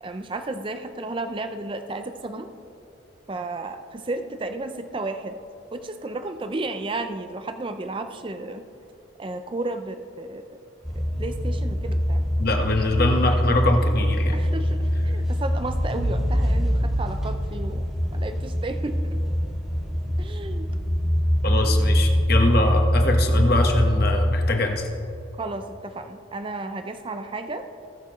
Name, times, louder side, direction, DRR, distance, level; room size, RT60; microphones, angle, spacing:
voice 1, 0.0-2.5 3.3-5.4 5.7-8.7 9.2-10.4 11.0-12.2 14.3-17.8 18.1-19.2 20.2-20.7 25.4-27.7, right 2 dB, 25° right, 8 dB, 0.4 m, -33 dB
sound 1, 10.8-24.5, equal, ahead, 1.8 m, -23 dB
voice 2, 12.4-14.4 21.4-24.9, left 2 dB, 50° left, 3 dB, 1.3 m, -23 dB
19.5 x 6.7 x 3.1 m, 2.7 s
head